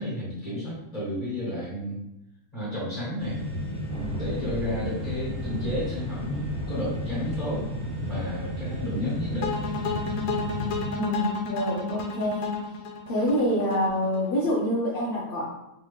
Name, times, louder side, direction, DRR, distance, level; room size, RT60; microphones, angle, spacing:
voice 1, 0.0-2.0 2.5-3.4 4.2-7.7 8.1-9.6, equal, 25° left, -11 dB, 1.7 m, -31 dB
sound 1, 3.2-10.8, left 1 dB, 15° right, 1.5 m, -33 dB
sound 2, 3.9-9.4, right 1 dB, 65° right, 0.5 m, -40 dB
sound 3, 9.4-14.5, left 4 dB, 85° left, 1.1 m, -31 dB
voice 2, 10.9-12.5 13.1-15.5, equal, 45° left, -6 dB, 0.8 m, -26 dB
3.6 x 3.2 x 3.2 m, 0.88 s
omnidirectional pair, 1.6 m